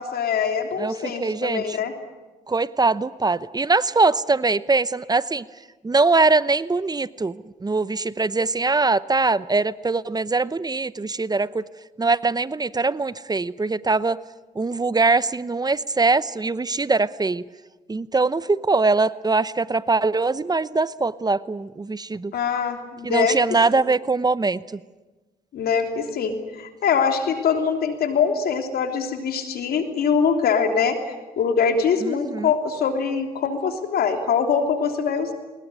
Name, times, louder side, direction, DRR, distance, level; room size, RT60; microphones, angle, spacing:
voice 1, 0.0-1.9 22.3-23.4 23.7-23.8 25.5-31.0 31.4-35.3, left 6 dB, 80° left, 6 dB, 3.2 m, -23 dB
voice 2, 0.8-1.8 2.5-5.4 5.8-11.6 12.0-14.2 14.6-17.4 17.9-22.3 23.0-24.8 32.0-32.5, right 3 dB, 25° right, 17 dB, 0.8 m, -22 dB
21.5 x 20.5 x 9.9 m, 1.2 s
cardioid pair, 70°, 16 cm